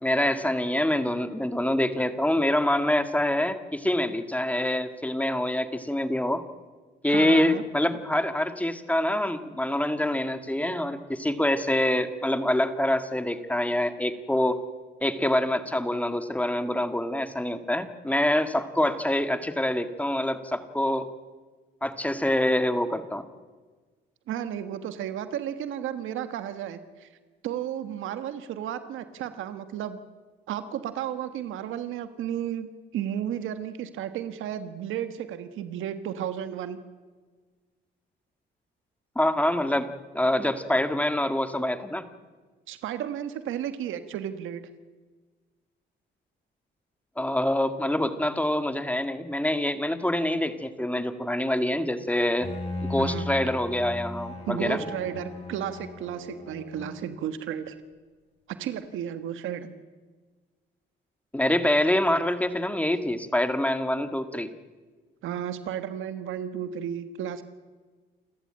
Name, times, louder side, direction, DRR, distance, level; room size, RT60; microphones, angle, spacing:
voice 1, 0.0-6.4 7.0-14.6 15.0-21.1 21.8-23.3 39.2-42.1 47.2-52.5 52.9-54.8 61.3-64.5, left 1 dB, 5° left, 10 dB, 2.0 m, -25 dB
voice 2, 7.1-7.6 24.3-27.1 27.4-30.0 30.5-32.7 32.9-36.8 42.7-44.7 53.0-53.3 54.5-57.7 58.5-59.7 65.2-67.4, right 10 dB, 85° right, 11 dB, 1.5 m, -33 dB
Bowed string instrument, 52.4-57.2, left 2 dB, 30° left, 7.8 m, -37 dB
28.5 x 14.0 x 8.9 m, 1.4 s
cardioid pair, 90°, 20 cm